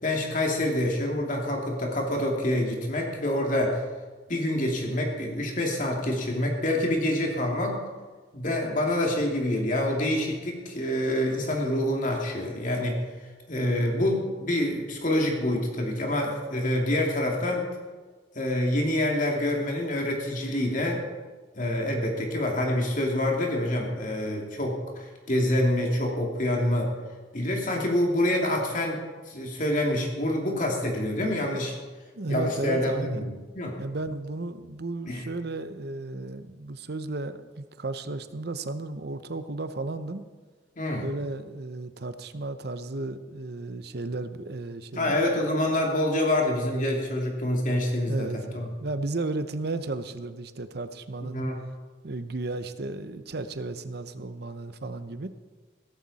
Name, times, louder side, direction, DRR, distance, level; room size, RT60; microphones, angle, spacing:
voice 1, 0.0-3.8 4.3-7.8 8.3-13.0 13.5-17.7 18.3-21.0 21.5-26.9 27.3-29.0 29.3-31.7 32.3-33.3 33.6-33.8 35.1-35.2 40.8-41.0 44.9-48.7 51.3-51.5, left 1 dB, 45° left, 0 dB, 2.7 m, -26 dB
voice 2, 32.1-33.3 33.8-40.2 41.0-45.2 48.1-51.4 52.0-55.3, right 2 dB, 60° right, 11 dB, 0.8 m, -34 dB
16.5 x 14.0 x 4.2 m, 1.4 s
head